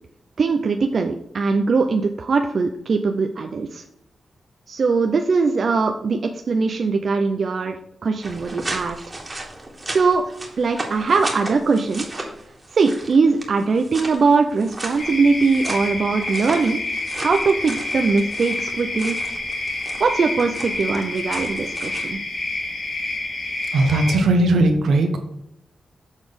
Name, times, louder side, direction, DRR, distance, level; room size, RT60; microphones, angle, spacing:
voice 1, 0.4-3.8 4.7-9.0 9.9-10.3 10.6-12.1 12.7-16.8 17.2-19.2 20.0-22.2, right 4 dB, 60° right, 4 dB, 0.6 m, -21 dB
sound 1, 8.2-22.1, right 2 dB, 25° right, 1.8 m, -35 dB
sound 2, 15.0-24.2, left 2 dB, 60° left, 2.9 m, -28 dB
voice 2, 23.7-25.2, right 2 dB, 85° right, 5 dB, 1.2 m, -18 dB
7.1 x 4.1 x 5.2 m, 0.78 s
cardioid pair, 75°, 0 cm